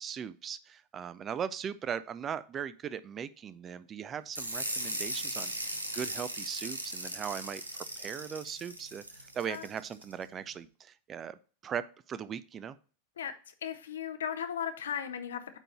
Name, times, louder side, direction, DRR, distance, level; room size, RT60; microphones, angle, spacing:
voice 1, 0.0-12.8, right 8 dB, 30° right, 0.5 m, -39 dB
sound 1, 4.3-10.1, right 1 dB, 90° right, 1.0 m, -38 dB
voice 2, 13.6-15.6, left 8 dB, 70° left, 0.8 m, -36 dB
9.0 x 3.9 x 4.2 m
figure-of-eight pair, 90°, 0 cm